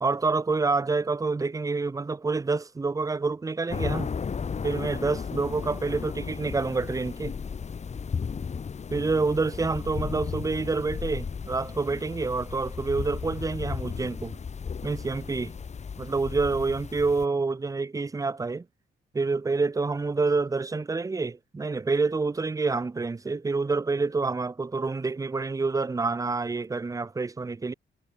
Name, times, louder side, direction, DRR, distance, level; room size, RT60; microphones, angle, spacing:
voice 1, 0.0-4.1 4.6-7.4 8.9-14.4 14.8-15.5 16.0-18.6 19.1-27.7, right 3 dB, 15° right, 0.6 m, -27 dB
sound 1, 3.7-17.2, left 6 dB, 35° left, 1.3 m, -35 dB
cardioid pair, 90°, 20 cm